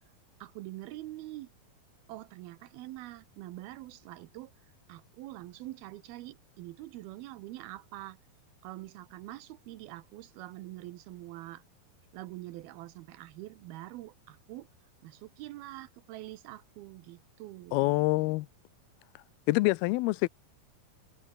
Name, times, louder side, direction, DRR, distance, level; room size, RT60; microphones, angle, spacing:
voice 1, 0.4-1.5 2.1-4.5 4.9-8.2 8.6-11.6 12.1-14.7 15.0-18.0, right 16 dB, 80° right, 2.7 m, -45 dB
voice 2, 17.7-18.5 19.5-20.3, left 21 dB, 85° left, 2.5 m, -26 dB
omnidirectional pair, 4.4 m